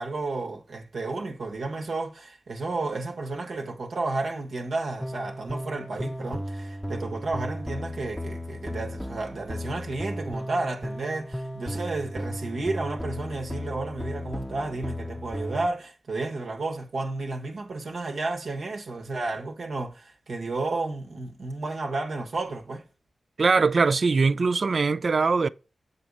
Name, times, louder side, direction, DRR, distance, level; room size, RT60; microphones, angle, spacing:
voice 1, 0.0-22.8, right 3 dB, 75° right, 1.1 m, -32 dB
sound 1, 5.0-15.7, equal, 5° left, 0.6 m, -35 dB
voice 2, 23.4-25.5, right 4 dB, 60° right, 0.3 m, -21 dB
7.5 x 4.1 x 4.7 m
cardioid pair, 40°, 0 cm